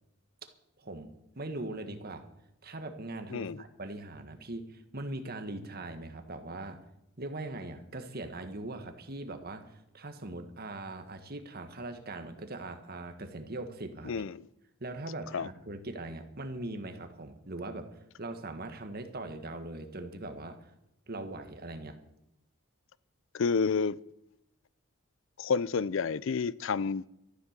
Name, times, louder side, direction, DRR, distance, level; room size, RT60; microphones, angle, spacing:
voice 1, 0.8-2.3 2.6-6.8 7.2-14.2 14.8-17.9 18.2-20.7 21.1-22.0, right 2 dB, 45° right, 1.6 m, -41 dB
voice 2, 3.3-3.6 14.1-14.3 15.3-15.5 23.3-24.0 25.4-27.1, left 5 dB, 65° left, 0.5 m, -29 dB
13.5 x 11.0 x 6.6 m
head